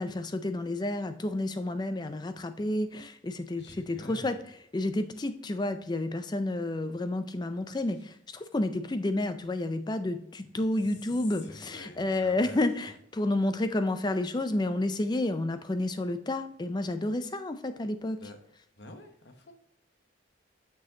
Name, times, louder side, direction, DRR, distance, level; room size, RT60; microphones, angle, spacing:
voice 1, 0.0-4.4 4.7-18.2, left 2 dB, 20° left, 9 dB, 0.4 m, -30 dB
voice 2, 3.6-4.4 10.8-11.0 11.3-13.0 18.2-18.4 18.8-19.5, left 2 dB, 60° left, 5 dB, 1.0 m, -47 dB
6.3 x 6.2 x 2.8 m, 0.71 s
head